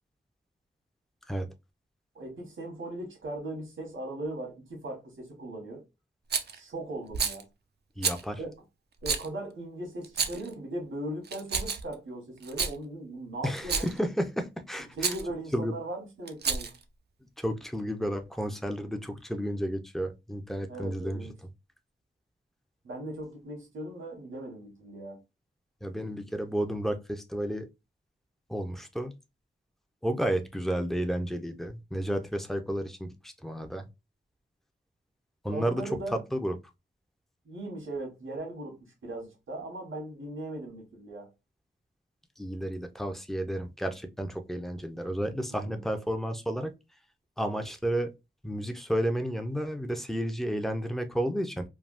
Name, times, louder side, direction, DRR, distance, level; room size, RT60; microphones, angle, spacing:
voice 1, 2.1-5.8 6.5-7.5 8.4-8.6 9.0-13.9 14.9-16.7 20.7-21.4 22.8-25.2 35.5-36.2 37.4-41.3 45.5-45.9, right 1 dB, 85° right, 1.4 m, -38 dB
Rattle, 6.3-6.6 7.1-7.4 8.0-8.2 9.0-9.3 10.0-10.5 11.2-11.9 12.4-12.7 13.6-14.0 15.0-15.2 16.3-16.8, right 5 dB, 55° right, 0.5 m, -30 dB
voice 2, 8.0-8.4 13.4-15.2 15.5-15.7 17.4-21.2 25.8-27.7 28.5-29.1 30.0-33.9 35.4-35.8 36.1-36.5 42.4-46.7 47.4-48.1 48.4-51.6, equal, ahead, 0.6 m, -32 dB
3.4 x 2.3 x 2.5 m
wide cardioid pair, 70°, 20 cm